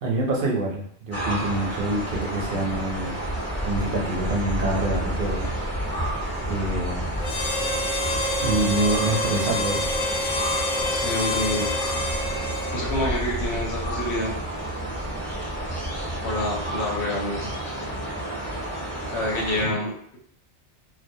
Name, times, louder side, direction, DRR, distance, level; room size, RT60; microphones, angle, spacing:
voice 1, 0.0-3.2 3.6-5.5 6.5-7.1 8.4-9.8, right 2 dB, 60° right, -1 dB, 0.6 m, -26 dB
sound 1, 1.1-19.6, right 1 dB, 15° left, 0.7 m, -30 dB
Harmonica, 7.2-13.2, left 1 dB, 55° left, 0.4 m, -27 dB
voice 2, 10.9-11.7 12.7-14.3 16.2-17.5 19.1-20.2, left 1 dB, 70° left, -3 dB, 1.0 m, -27 dB
2.4 x 2.0 x 2.6 m, 0.65 s
omnidirectional pair, 1.2 m